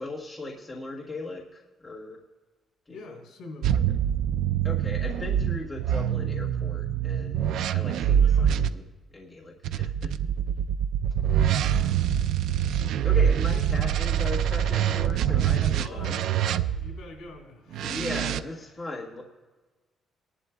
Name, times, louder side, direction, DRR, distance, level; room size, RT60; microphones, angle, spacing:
voice 1, 0.0-2.2 2.9-3.2 3.8-3.9 4.6-8.8 9.1-10.2 12.6-16.6 17.8-19.2, left 2 dB, 15° left, -4 dB, 1.3 m, -38 dB
voice 2, 2.9-3.8 8.2-8.5 11.2-12.0 13.5-13.8 15.8-16.2 16.7-18.1 18.5-18.8, left 3 dB, 75° left, 0 dB, 3.4 m, -45 dB
sound 1, 3.6-8.7 9.6-17.0 17.7-18.4, right 9 dB, 75° right, 0.3 m, -25 dB
19.0 x 11.0 x 2.2 m, 1.3 s
cardioid pair, 175°, 0 cm